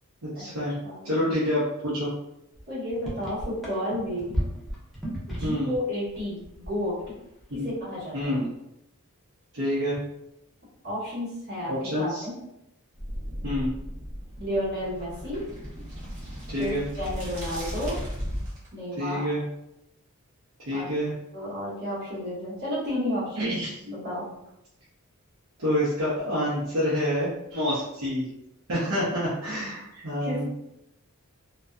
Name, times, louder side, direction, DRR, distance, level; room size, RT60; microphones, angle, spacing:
voice 1, 0.2-0.8 1.0-2.1 5.4-5.7 7.5-7.7 8.1-8.5 9.5-10.0 11.7-12.3 13.4-13.7 16.5-16.8 19.0-19.4 20.6-21.1 23.4-23.7 25.6-28.3 28.7-30.5, equal, 70° right, -9 dB, 0.7 m, -27 dB
voice 2, 0.8-1.2 2.7-4.4 5.3-7.0 7.6-8.4 10.8-11.7 12.0-12.3 14.4-15.5 16.6-18.0 18.7-19.3 20.7-20.9 21.3-23.6 23.8-24.2 30.2-30.5, equal, 50° right, -8 dB, 1.2 m, -32 dB
sound 1, 2.5-2.6 2.9-5.8 6.1-7.1 7.4-7.7, equal, ahead, 0.6 m, -33 dB
sound 2, 13.0-18.7, equal, 35° right, 0.8 m, -36 dB
2.6 x 2.2 x 2.3 m, 0.85 s
head